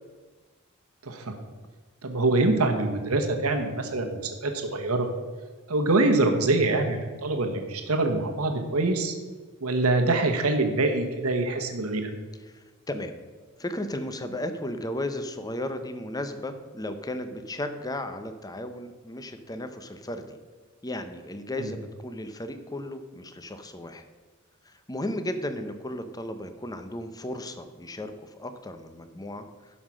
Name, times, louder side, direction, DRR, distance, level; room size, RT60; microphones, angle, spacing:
voice 1, 1.0-1.3 2.0-5.1 5.7-9.1 9.6-12.1 21.6-21.7, right 2 dB, 85° right, 4 dB, 1.2 m, -25 dB
voice 2, 12.5-13.1 13.6-20.4 20.8-24.0 24.7-29.4, left 1 dB, 15° left, 8 dB, 0.7 m, -35 dB
11.5 x 5.7 x 6.2 m, 1.4 s
head